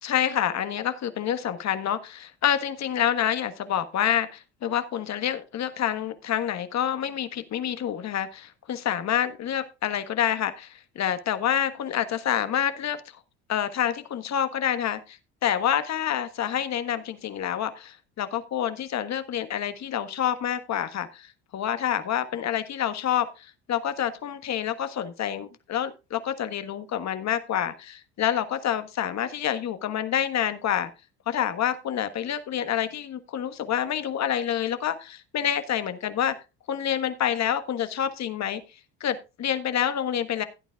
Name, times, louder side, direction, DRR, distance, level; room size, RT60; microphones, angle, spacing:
voice 1, 0.0-13.0 13.5-30.9 31.3-36.3 36.7-38.6 39.0-40.4, left 10 dB, 50° left, 11 dB, 1.5 m, -27 dB
16.5 x 9.0 x 2.4 m, 0.29 s
supercardioid pair, 80°, 36 cm